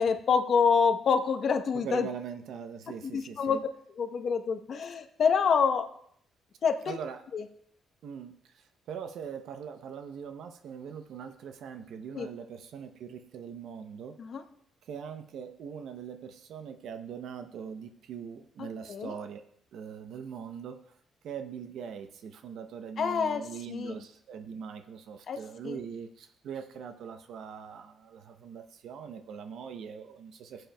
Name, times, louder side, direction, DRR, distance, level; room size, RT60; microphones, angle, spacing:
voice 1, 0.0-2.1 3.0-3.6 4.0-5.9 6.6-7.0 7.3-7.4 12.1-12.3 14.2-14.4 18.6-19.1 23.0-24.0 25.3-25.8, left 6 dB, 55° left, 7 dB, 0.9 m, -27 dB
voice 2, 1.7-3.6 6.9-7.2 8.0-14.2 14.8-19.4 19.7-20.8 21.2-30.7, right 7 dB, 75° right, 7 dB, 0.6 m, -41 dB
22.0 x 7.7 x 2.2 m, 0.66 s
cardioid pair, 90°, 0 cm